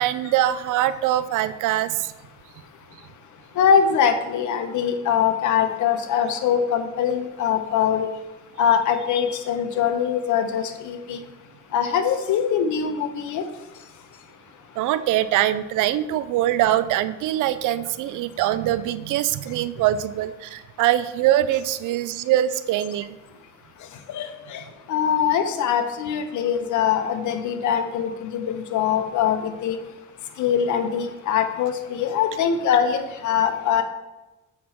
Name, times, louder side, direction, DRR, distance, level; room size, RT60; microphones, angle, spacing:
voice 1, 0.0-2.1 14.8-23.2, right 13 dB, 85° right, 15 dB, 0.5 m, -23 dB
voice 2, 3.5-8.1 8.6-11.2 11.7-13.4 24.1-29.8 30.4-33.8, left 8 dB, 75° left, 8 dB, 0.9 m, -23 dB
7.4 x 5.9 x 4.3 m, 1.1 s
cardioid pair, 90°, 30 cm